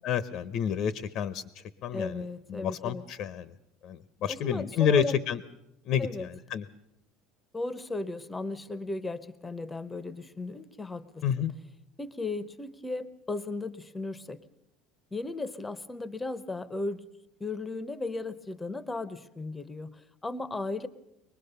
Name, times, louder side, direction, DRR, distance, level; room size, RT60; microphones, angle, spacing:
voice 1, 0.0-1.4 1.8-2.2 2.5-3.5 3.8-5.4 5.9-6.6 11.2-11.5, left 8 dB, 40° left, 15 dB, 0.7 m, -29 dB
voice 2, 1.9-3.0 4.3-5.2 6.0-6.3 7.5-11.5 12.0-14.4 15.1-17.0 17.4-20.9, left 3 dB, 10° left, 16 dB, 0.7 m, -36 dB
24.0 x 20.0 x 6.8 m, 0.85 s
cardioid pair, 170°, 0 cm